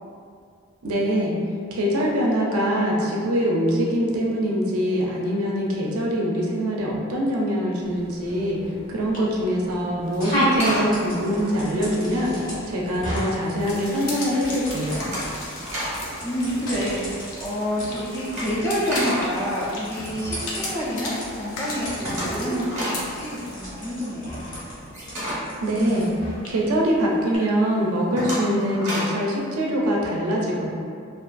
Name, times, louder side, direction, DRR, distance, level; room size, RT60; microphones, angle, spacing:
voice 1, 0.8-1.3 1.7-8.6 8.9-12.4 12.7-15.0 25.6-26.1 26.5-30.7, equal, 85° right, -2 dB, 0.5 m, -23 dB
sound 1, 7.8-27.4, equal, 40° left, 0.7 m, -33 dB
sound 2, 10.0-12.6 13.0-13.5 13.9-14.3 14.6-16.0 16.3-16.5 16.7-20.5 20.9-21.0 21.3-21.4 21.5-26.6 27.0-27.1 27.6-29.3, equal, 35° right, 0.7 m, -32 dB
sound 3, 13.6-23.5, left 2 dB, 75° left, 0.5 m, -37 dB
voice 2, 16.2-24.4, equal, 10° left, -7 dB, 0.3 m, -28 dB
2.5 x 2.4 x 2.2 m, 2.3 s
head